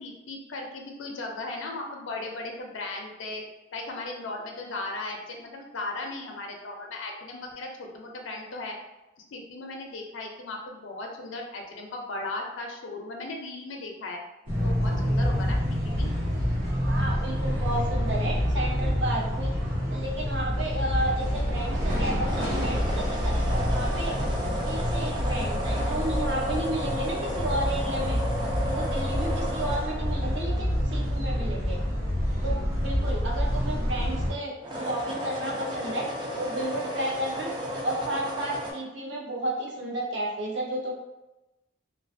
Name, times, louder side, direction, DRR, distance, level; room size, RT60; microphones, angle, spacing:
voice 1, 0.0-3.4 3.7-8.7 9.3-14.2 14.6-16.1, left 2 dB, 75° left, 1 dB, 0.5 m, -37 dB
sound 1, 14.5-34.3, equal, 85° right, 0.9 m, -27 dB
voice 2, 16.9-19.5 19.9-24.1 24.6-28.2 28.7-31.8 32.4-36.1 36.4-37.5 37.8-40.9, right 1 dB, 65° right, -2 dB, 0.6 m, -32 dB
sound 2, 21.8-31.1 34.5-38.7, equal, 20° right, 0.3 m, -34 dB
2.3 x 2.2 x 2.5 m, 0.98 s
head